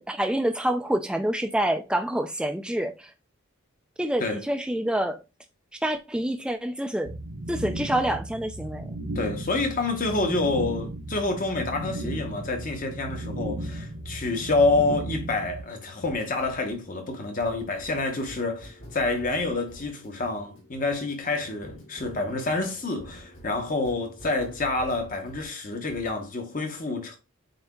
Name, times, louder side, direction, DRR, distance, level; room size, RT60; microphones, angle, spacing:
voice 1, 0.0-3.1 4.0-5.2 5.8-7.2 7.5-8.9, right 1 dB, 5° right, 0.3 m, -27 dB
sound 1, 7.0-15.6, right 1 dB, 70° right, 0.8 m, -35 dB
voice 2, 9.1-27.2, left 3 dB, 35° left, 0.9 m, -28 dB
sound 2, 11.3-25.5 25.9-26.2, equal, 60° left, 2.0 m, -49 dB
7.7 x 2.7 x 2.3 m
head